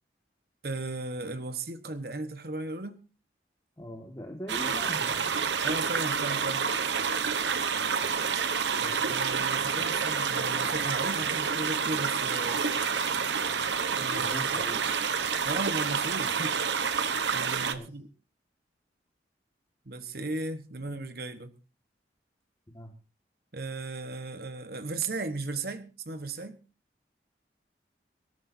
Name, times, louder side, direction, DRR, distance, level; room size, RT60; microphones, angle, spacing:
voice 1, 0.6-3.0 5.6-6.7 9.1-12.6 14.0-14.5 15.4-16.6 17.3-18.1 19.8-21.5 23.5-26.6, right 2 dB, 60° right, 1.2 m, -36 dB
voice 2, 3.8-5.4 8.7-8.9 11.2-11.6 14.1-14.8 17.6-17.9 22.7-22.9, equal, 20° left, 1.7 m, -42 dB
sound 1, 4.5-17.7, right 6 dB, 90° right, 1.0 m, -28 dB
25.0 x 13.0 x 2.7 m
head